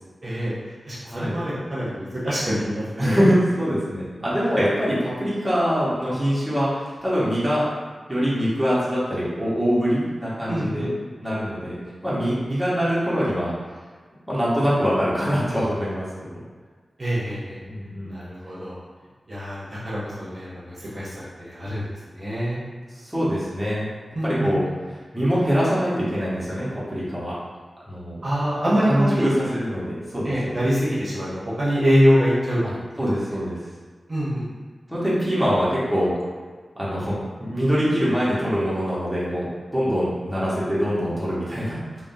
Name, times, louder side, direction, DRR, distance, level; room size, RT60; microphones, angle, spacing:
voice 1, 0.2-0.5 0.9-3.2 10.5-10.9 17.0-17.6 18.1-18.8 19.3-21.1 21.4-22.6 24.1-24.5 28.2-29.3 30.2-32.6 34.1-34.4, equal, 40° right, -8 dB, 0.8 m, -24 dB
voice 2, 1.0-1.4 3.0-7.6 8.1-10.9 11.2-11.8 12.0-13.5 14.3-16.1 17.6-18.2 23.0-23.9 24.2-24.7 25.1-27.3 27.9-28.2 28.6-30.6 32.6-32.7 33.0-33.6 34.9-36.1 36.8-39.5 39.7-42.0, equal, 10° right, -9 dB, 0.9 m, -23 dB
3.4 x 2.2 x 2.6 m, 1.5 s
wide cardioid pair, 95°, 0 cm